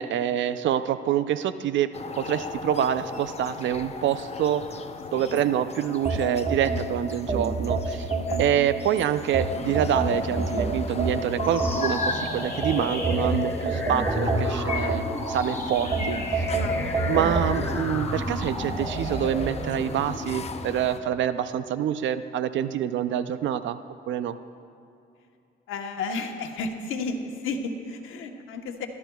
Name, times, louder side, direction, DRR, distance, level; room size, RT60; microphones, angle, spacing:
voice 1, 0.0-1.9 2.2-4.7 5.1-8.1 8.4-16.5 17.1-23.8 24.1-24.4, right 10 dB, 70° right, 13 dB, 0.5 m, -26 dB
Tui - New Zealand bird, 1.9-21.0, left 4 dB, 35° left, 0.7 m, -38 dB
sound 1, 6.0-8.8 9.3-12.1 12.6-15.4 15.9-17.5, right 3 dB, 30° right, 1.5 m, -27 dB
sound 2, 11.4-20.9, left 1 dB, 10° left, 2.3 m, -33 dB
voice 2, 25.7-28.9, left 3 dB, 85° left, 4 dB, 1.1 m, -32 dB
22.0 x 12.0 x 2.3 m, 2.7 s
cardioid pair, 90°, 20 cm